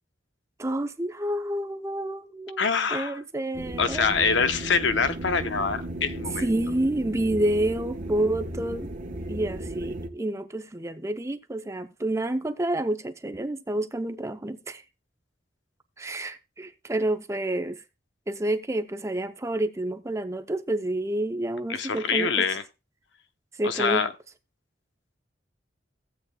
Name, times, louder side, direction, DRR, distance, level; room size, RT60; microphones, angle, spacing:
voice 1, 0.6-2.6 2.9-4.1 6.4-8.9 9.3-14.8 16.0-17.8 18.3-22.5 23.6-24.0, right 1 dB, 15° right, 0.5 m, -29 dB
voice 2, 2.6-3.2 3.8-6.5 21.7-22.6 23.6-24.1, left 5 dB, 75° left, 0.8 m, -25 dB
sound 1, 3.5-10.1, right 1 dB, 45° right, 1.0 m, -35 dB
15.5 x 8.2 x 2.2 m
head